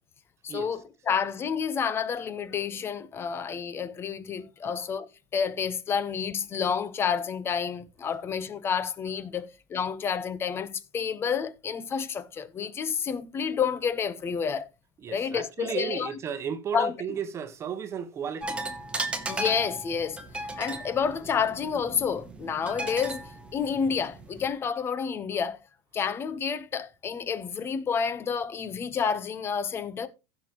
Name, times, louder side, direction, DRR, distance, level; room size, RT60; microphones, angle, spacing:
voice 1, 0.4-5.1 5.3-14.7 15.1-16.1 16.7-16.9 19.3-25.6 25.9-30.1, left 6 dB, 25° left, 0.8 m, -29 dB
voice 2, 15.0-18.7, right 8 dB, 25° right, 1.1 m, -34 dB
sound 1, 18.4-24.5, right 2 dB, 10° right, 1.3 m, -36 dB
15.5 x 6.2 x 3.0 m
supercardioid pair, 150°, 11 cm